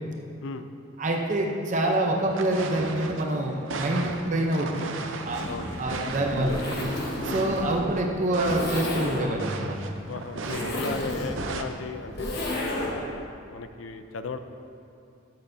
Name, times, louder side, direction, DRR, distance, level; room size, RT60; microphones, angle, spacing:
voice 1, 1.0-4.9 5.3-5.4 5.8-6.6 7.2-9.7 10.5-10.7, right 1 dB, 40° right, 0 dB, 0.7 m, -26 dB
sound 1, 2.3-9.1 9.3-11.6, right 3 dB, 80° right, 0.6 m, -36 dB
Zipper (clothing), 5.2-13.2, left 1 dB, 55° left, 1.2 m, -33 dB
voice 2, 10.1-12.3 12.8-14.4, left 4 dB, 90° left, 9 dB, 0.5 m, -36 dB
13.0 x 7.6 x 2.7 m, 2.5 s
head